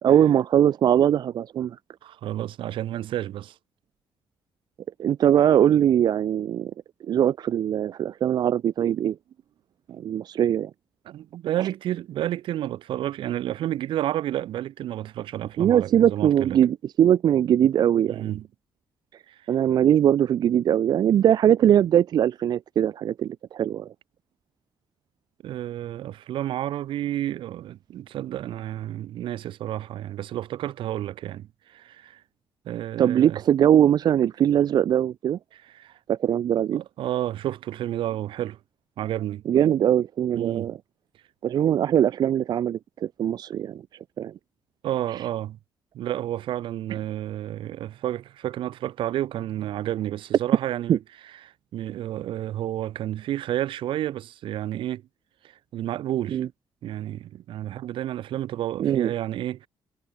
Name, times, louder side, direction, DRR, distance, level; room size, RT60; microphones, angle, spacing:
voice 1, 0.0-1.8 5.0-6.7 7.1-9.2 9.9-10.7 11.6-11.7 15.6-18.3 19.1-19.2 19.5-23.9 33.0-35.4 36.1-36.8 39.5-40.7 41.4-43.8 44.2-44.3 45.1-45.2 50.9-51.0 56.3-56.5 58.8-59.1, right 10 dB, 55° right, 0.5 m, -21 dB
voice 2, 2.0-3.6 11.1-16.6 18.1-18.5 19.3-19.4 25.4-32.2 32.7-33.4 35.5-36.0 36.7-38.6 39.0-39.4 40.3-40.7 44.8-45.6 45.9-51.0 51.4-55.0 55.7-56.5 56.8-59.7, right 12 dB, 85° right, 5.5 m, -30 dB
cardioid pair, 150°, 8 cm